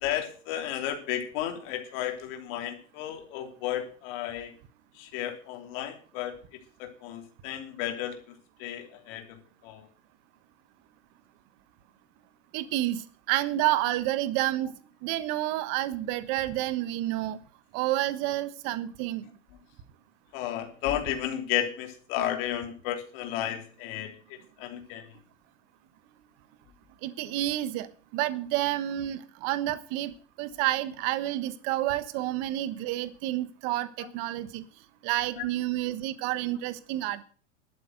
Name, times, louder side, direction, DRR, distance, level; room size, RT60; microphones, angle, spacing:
voice 1, 0.0-4.5 4.9-6.4 6.8-8.2 8.6-9.9 20.3-25.1 34.0-34.1 35.3-35.5, left 11 dB, 45° left, 4 dB, 3.2 m, -33 dB
voice 2, 12.5-13.0 13.3-14.7 15.0-17.4 17.7-19.2 27.0-27.9 28.1-30.1 30.4-34.6 35.0-37.2, right 15 dB, 40° right, 14 dB, 1.2 m, -29 dB
12.0 x 8.5 x 7.7 m, 0.42 s
supercardioid pair, 150°, 37 cm